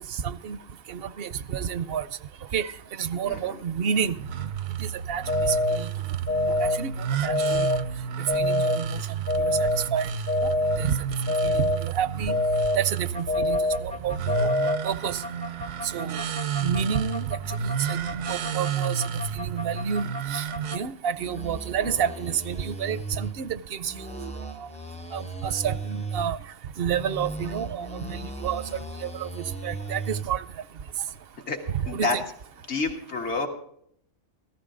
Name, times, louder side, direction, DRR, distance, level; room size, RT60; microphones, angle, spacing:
voice 1, 0.2-0.6 0.9-2.1 2.5-4.2 4.8-5.9 6.6-6.9 7.2-7.8 8.3-9.0 9.4-9.6 9.9-10.1 10.4-11.0 11.4-12.4 12.7-15.2 15.9-16.2 16.6-17.4 17.9-18.0 18.3-19.0 19.3-20.0 20.3-20.4 20.7-24.3 24.6-24.7 25.1-26.4 26.8-29.3 29.6-30.4 31.7-32.2, right 8 dB, 60° right, 15 dB, 0.8 m, -29 dB
sound 1, 4.1-20.8, right 7 dB, 80° right, 1.1 m, -31 dB
sound 2, 5.3-5.8 6.3-6.8 7.3-7.8 8.3-8.8 9.3-9.8 10.3-10.8 11.3-11.8 12.3-12.8 13.3-13.8 14.3-14.8, left 2 dB, 85° left, 1.8 m, -24 dB
sound 3, 13.1-20.8 21.1-23.3 23.8-26.3 26.9-30.2, right 1 dB, 10° left, 0.5 m, -37 dB
voice 2, 32.7-33.5, left 3 dB, 65° left, 3 dB, 2.0 m, -28 dB
15.0 x 13.5 x 3.8 m, 0.67 s
omnidirectional pair, 1.2 m